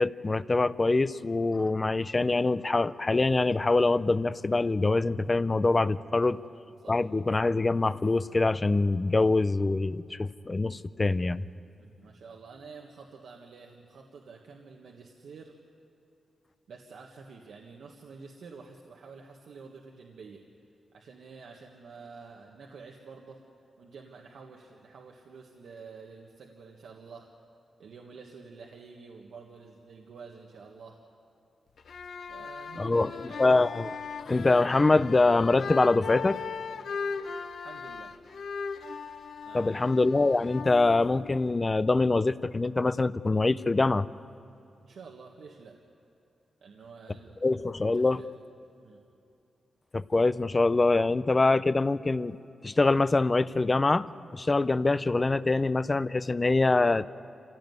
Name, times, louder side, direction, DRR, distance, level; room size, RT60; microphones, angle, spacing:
voice 1, 0.0-6.4 6.9-11.4 32.8-33.1 33.4-33.9 34.3-36.4 39.5-44.1 47.4-48.2 49.9-52.4 52.6-54.1 54.3-57.1, left 3 dB, 25° left, 15 dB, 0.5 m, -24 dB
voice 2, 6.4-7.0 11.8-15.6 16.7-20.4 20.9-23.4 23.8-27.3 27.8-31.0 32.3-33.5 37.6-38.1 39.4-39.8 44.8-45.8 46.6-47.4 47.9-48.3 48.8-49.0, right 5 dB, 80° right, 0 dB, 1.6 m, -49 dB
sound 1, 31.8-41.6, left 5 dB, 65° left, 0.9 m, -38 dB
26.0 x 16.5 x 9.5 m, 2.7 s
wide cardioid pair, 140°, 0 cm